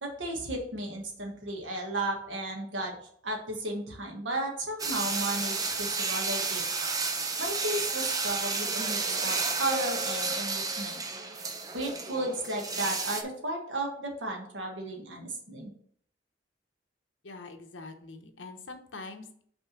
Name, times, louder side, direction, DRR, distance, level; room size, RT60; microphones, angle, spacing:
voice 1, 0.0-3.0 3.2-6.6 7.4-11.0 11.7-15.7, right 1 dB, 75° right, 1 dB, 1.5 m, -34 dB
sound 1, 4.8-13.2, right 4 dB, 20° right, 0.6 m, -31 dB
voice 2, 17.2-19.4, left 3 dB, 80° left, 6 dB, 0.9 m, -44 dB
5.4 x 3.5 x 5.8 m, 0.62 s
head